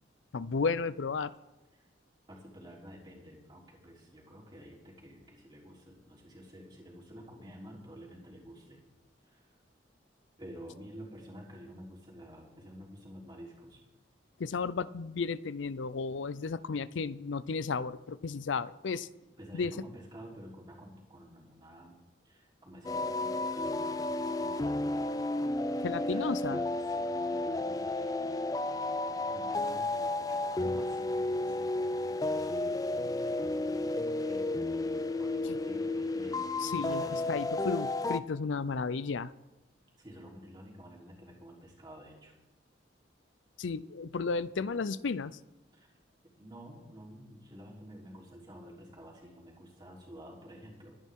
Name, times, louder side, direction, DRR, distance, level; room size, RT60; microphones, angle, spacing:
voice 1, 0.3-1.3 14.4-19.1 19.5-19.7 25.8-26.6 36.6-39.3 43.6-45.4, left 4 dB, 80° left, 17 dB, 0.5 m, -33 dB
voice 2, 2.3-8.8 9.2-9.5 10.4-13.8 19.4-21.9 22.2-24.8 25.6-34.6 35.2-37.4 40.0-42.3 45.7-46.0 46.4-51.0, equal, 25° right, -4 dB, 3.6 m, -50 dB
sound 1, 22.8-38.2, left 2 dB, 20° left, 0.3 m, -32 dB
23.5 x 10.5 x 3.7 m, 1.0 s
head